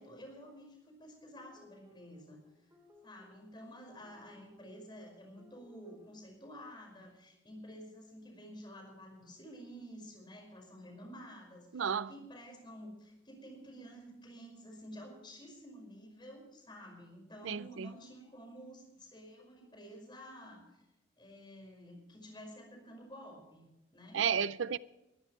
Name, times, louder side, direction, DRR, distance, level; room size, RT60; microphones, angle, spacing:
voice 1, 0.0-2.4 3.0-20.8 21.2-23.7 23.9-24.3, equal, 25° left, 5.5 m, -51 dB
sound 1, 1.4-6.2, left 2 dB, 15° right, 3.0 m, -64 dB
voice 2, 11.7-12.1 17.4-17.9 24.1-24.8, right 7 dB, 80° right, 0.5 m, -32 dB
22.0 x 13.5 x 3.2 m
head